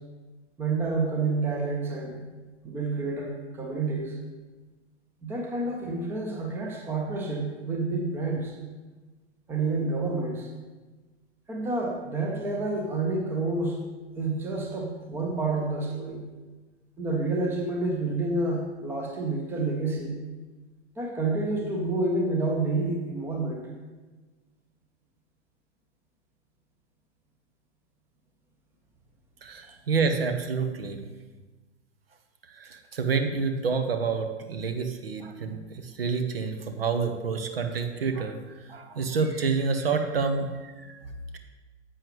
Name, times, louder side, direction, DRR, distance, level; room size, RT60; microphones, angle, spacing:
voice 1, 0.6-2.2 2.6-4.2 5.2-8.5 9.5-10.5 11.5-13.8 14.2-16.2 17.0-20.2 21.0-23.6, right 3 dB, 5° right, 1 dB, 0.7 m, -29 dB
voice 2, 29.4-31.0 32.5-38.4 38.7-41.0, right 5 dB, 55° right, 7 dB, 1.0 m, -28 dB
10.0 x 8.0 x 3.2 m, 1.3 s
figure-of-eight pair, 110°, 35 cm